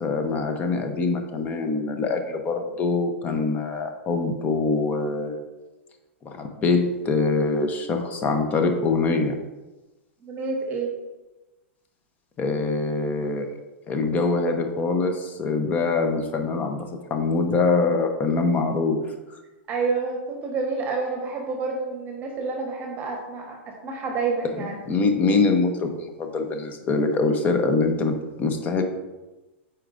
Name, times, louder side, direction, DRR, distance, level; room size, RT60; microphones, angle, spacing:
voice 1, 0.0-5.4 6.2-9.4 12.4-13.5 13.8-19.0 24.4-28.8, left 3 dB, 25° left, 6 dB, 0.7 m, -24 dB
voice 2, 10.2-10.9 19.7-23.6 23.8-24.8, right 4 dB, 30° right, 1 dB, 1.1 m, -28 dB
8.2 x 4.5 x 2.5 m, 1.1 s
hypercardioid pair, 135°, 7 cm